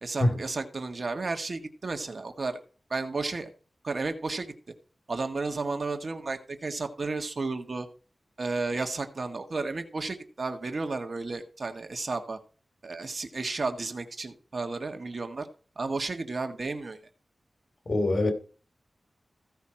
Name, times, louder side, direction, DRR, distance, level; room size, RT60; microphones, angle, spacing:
voice 1, 0.0-2.6 2.9-3.5 3.8-4.5 5.1-7.9 8.4-12.4 12.8-15.5 15.8-17.0, right 3 dB, 55° right, 1.8 m, -32 dB
voice 2, 17.9-18.3, left 1 dB, 50° left, 3.0 m, -23 dB
15.5 x 5.7 x 4.4 m
wide cardioid pair, 95°, 0 cm